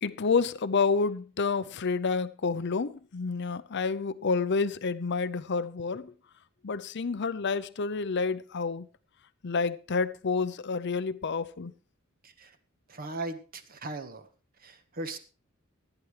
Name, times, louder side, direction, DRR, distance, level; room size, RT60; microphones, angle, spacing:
voice 1, 0.0-6.1 6.6-8.9 9.4-11.7, left 4 dB, 55° left, 0.6 m, -29 dB
voice 2, 12.2-12.6 12.9-14.3 14.6-15.2, right 2 dB, 45° right, 1.4 m, -38 dB
17.0 x 10.0 x 3.3 m
head